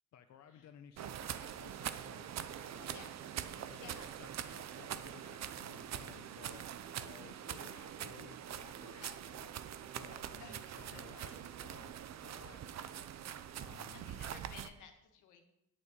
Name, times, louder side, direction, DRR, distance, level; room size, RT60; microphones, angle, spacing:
voice 1, 0.1-6.6 7.0-9.5 9.9-12.0 12.2-13.0 13.3-14.2, left 8 dB, 65° left, 7 dB, 0.8 m, -58 dB
sound 1, 1.0-14.7, right 10 dB, 60° right, 0.8 m, -44 dB
voice 2, 2.8-3.1 3.7-4.1 9.0-9.4 10.4-10.5 10.8-11.5 13.9-15.4, left 6 dB, 90° left, 4 dB, 1.8 m, -56 dB
8.4 x 7.0 x 8.1 m, 0.84 s
cardioid pair, 90°, 30 cm